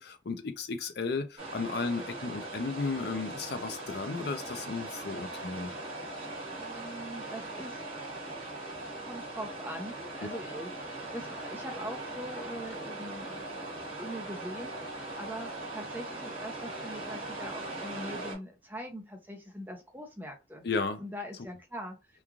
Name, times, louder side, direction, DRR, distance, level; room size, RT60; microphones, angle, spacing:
voice 1, 0.0-5.7 10.3-10.4 20.6-21.0, left 4 dB, 55° left, 0.4 m, -34 dB
sound 1, 1.4-18.4, right 2 dB, 30° right, 1.2 m, -40 dB
voice 2, 6.5-7.8 9.0-13.7 14.0-20.6 21.0-22.0, equal, 10° right, 0.5 m, -42 dB
3.0 x 2.3 x 2.4 m
head